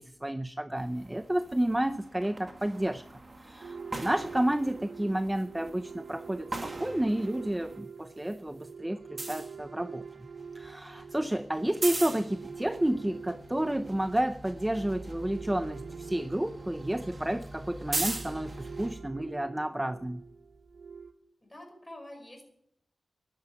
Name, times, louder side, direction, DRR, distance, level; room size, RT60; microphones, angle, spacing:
voice 1, 0.0-3.0 3.4-10.0 10.5-20.2, right 1 dB, 10° right, 0.5 m, -31 dB
sound 1, 0.8-7.8 8.1-18.9, right 2 dB, 35° right, 2.2 m, -42 dB
sound 2, 3.6-21.1, right 5 dB, 80° right, 1.7 m, -45 dB
voice 2, 21.4-22.5, left 1 dB, 15° left, 5.2 m, -47 dB
12.5 x 11.5 x 8.1 m
wide cardioid pair, 95°, 0 cm